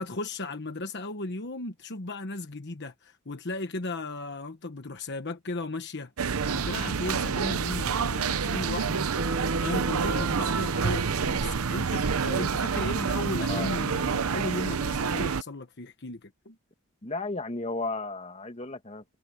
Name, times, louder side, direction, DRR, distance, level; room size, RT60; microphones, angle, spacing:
voice 1, 0.0-6.1 6.4-9.1 9.6-16.6, left 2 dB, 55° left, 1.2 m, -36 dB
sound 1, 6.2-15.4, right 5 dB, 85° right, 0.7 m, -28 dB
Bass guitar, 9.2-13.6, right 1 dB, 55° right, 2.2 m, -37 dB
voice 2, 13.4-13.7 17.0-19.0, left 3 dB, 30° left, 1.8 m, -34 dB
head